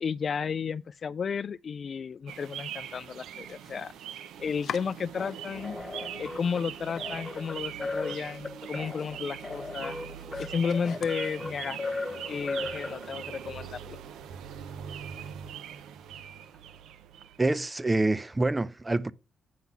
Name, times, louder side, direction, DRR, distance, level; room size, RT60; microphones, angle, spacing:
voice 1, 0.0-3.9 4.4-5.8 6.2-10.0 10.4-11.9 12.3-14.0, left 6 dB, 45° left, 0.3 m, -33 dB
sound 1, 2.3-17.5, right 9 dB, 80° right, 0.7 m, -42 dB
Domestic sounds home sounds, 3.2-5.7 6.1-6.8 7.2-7.3 7.7-7.8 8.2-11.9, left 8 dB, 65° left, 0.7 m, -46 dB
sound 2, 5.2-13.4, left 3 dB, 20° left, 1.0 m, -38 dB
voice 2, 17.4-19.1, right 2 dB, 20° right, 0.5 m, -26 dB
9.4 x 3.9 x 5.8 m
cardioid pair, 90°, 0 cm